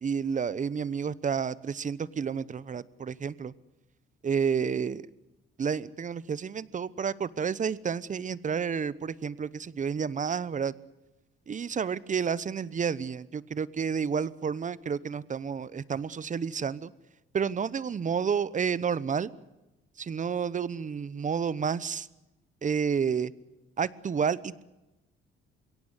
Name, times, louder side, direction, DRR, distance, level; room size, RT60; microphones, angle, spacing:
voice 1, 0.0-3.5 4.2-5.1 5.6-10.7 11.5-16.9 17.3-19.3 20.0-22.1 22.6-23.3 23.8-24.6, right 6 dB, 35° right, 19 dB, 1.0 m, -30 dB
22.5 x 17.5 x 9.7 m, 1.0 s
cardioid pair, 90°, 21 cm